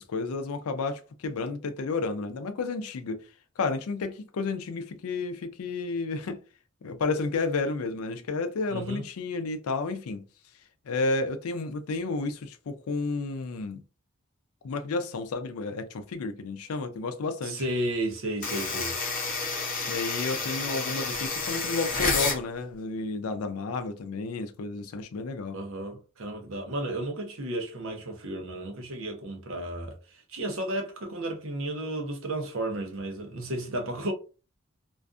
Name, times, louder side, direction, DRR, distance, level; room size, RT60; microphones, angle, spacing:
voice 1, 0.0-3.2 3.6-6.4 6.8-10.2 10.9-13.8 14.6-17.6 19.9-25.6, left 3 dB, 90° left, 0.4 m, -31 dB
voice 2, 8.7-9.0 17.4-18.9 25.5-34.1, right 1 dB, 70° right, 0.7 m, -33 dB
sound 1, 18.4-22.4, left 4 dB, 40° left, 0.7 m, -30 dB
2.5 x 2.3 x 2.4 m
head